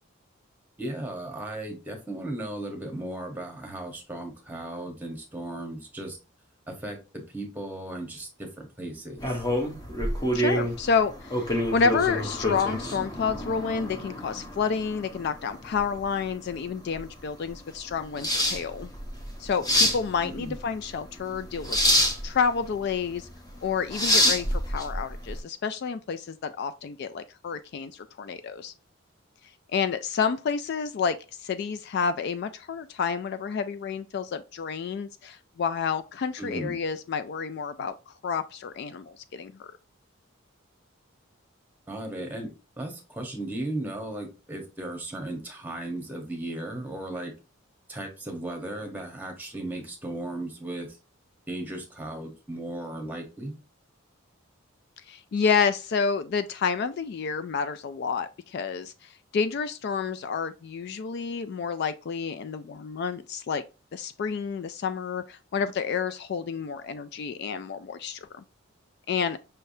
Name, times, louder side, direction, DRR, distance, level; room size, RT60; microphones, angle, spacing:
voice 1, 0.8-6.2 6.7-9.4 20.2-20.6 36.4-36.8 41.9-42.5 42.8-47.3 47.9-51.0 51.5-53.6, right 1 dB, 10° right, 1.1 m, -36 dB
sound 1, 9.2-25.4, equal, 20° left, 0.9 m, -28 dB
voice 2, 10.3-18.9 19.4-21.8 22.2-23.3 23.6-28.7 29.7-31.2 31.4-37.9 38.2-39.7 55.1-63.6 63.9-68.4 69.1-69.4, left 6 dB, 50° left, 0.3 m, -29 dB
5.6 x 3.3 x 2.6 m
head